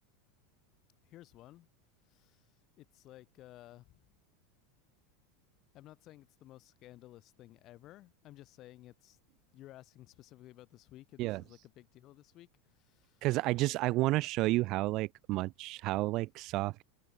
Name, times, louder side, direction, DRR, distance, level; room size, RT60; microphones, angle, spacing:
voice 1, 1.0-1.7 2.1-2.5 2.8-4.0 5.7-9.2 9.5-13.3, left 15 dB, 45° left, 7.4 m, -55 dB
voice 2, 13.2-16.8, right 19 dB, 50° right, 0.6 m, -31 dB
supercardioid pair, 115°, 0 cm